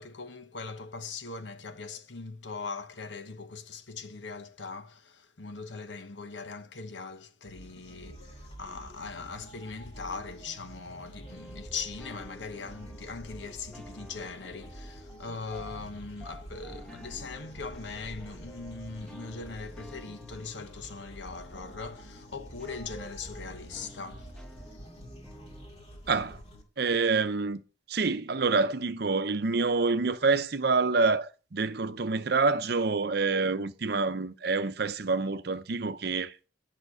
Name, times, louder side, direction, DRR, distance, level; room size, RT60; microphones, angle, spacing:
voice 1, 0.0-24.3, left 4 dB, 80° left, 1.1 m, -40 dB
sound 1, 7.5-26.6, equal, 35° left, 2.3 m, -48 dB
sound 2, 11.2-25.7, equal, 5° left, 1.3 m, -50 dB
voice 2, 26.1-26.4 26.8-27.6 27.9-36.4, right 4 dB, 60° right, 0.7 m, -27 dB
11.0 x 5.9 x 4.8 m
head